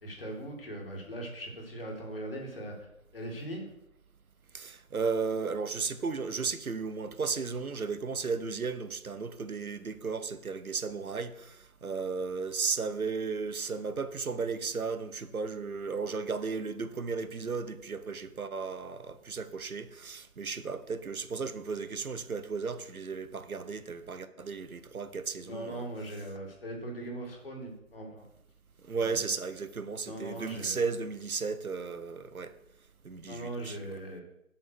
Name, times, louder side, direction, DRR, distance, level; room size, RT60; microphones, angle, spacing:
voice 1, 0.0-2.7 3.1-3.7 25.4-28.2 29.0-29.3 30.0-30.8 33.3-34.2, right 1 dB, 40° left, 2.2 m, -40 dB
voice 2, 4.5-25.9 28.9-32.5 33.0-33.8, right 5 dB, 80° right, 0.9 m, -34 dB
7.2 x 5.2 x 6.0 m
figure-of-eight pair, 165°, 42 cm